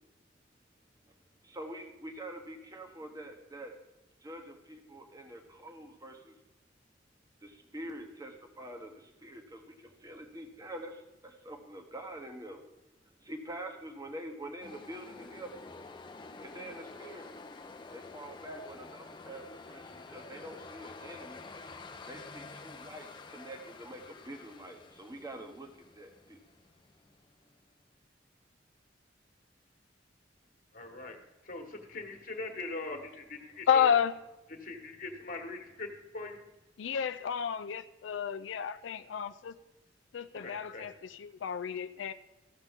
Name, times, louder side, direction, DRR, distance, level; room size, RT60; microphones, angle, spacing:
voice 1, 1.4-3.8 4.2-6.4 7.4-12.6 13.0-15.5 16.4-17.3 17.9-21.4 22.1-26.4, right 1 dB, 20° right, 5 dB, 1.0 m, -46 dB
sound 1, 14.6-27.5, left 3 dB, 25° left, 0.6 m, -49 dB
voice 2, 30.7-33.9 34.6-36.4 40.3-40.9, left 2 dB, 50° left, 4 dB, 1.3 m, -41 dB
voice 3, 33.7-34.2 36.8-39.5 40.1-42.1, left 8 dB, 80° left, 11 dB, 0.4 m, -31 dB
15.0 x 6.6 x 3.6 m, 1.0 s
head